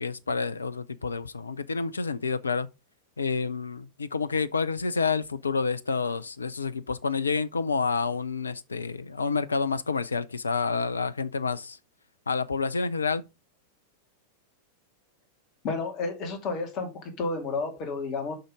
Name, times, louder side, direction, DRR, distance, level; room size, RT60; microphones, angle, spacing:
voice 1, 0.0-2.7 3.2-11.8 12.3-13.2, left 4 dB, 75° left, 0.6 m, -29 dB
voice 2, 15.6-18.3, left 3 dB, 40° left, 2.6 m, -31 dB
6.5 x 5.8 x 5.1 m
figure-of-eight pair, 90°, 0 cm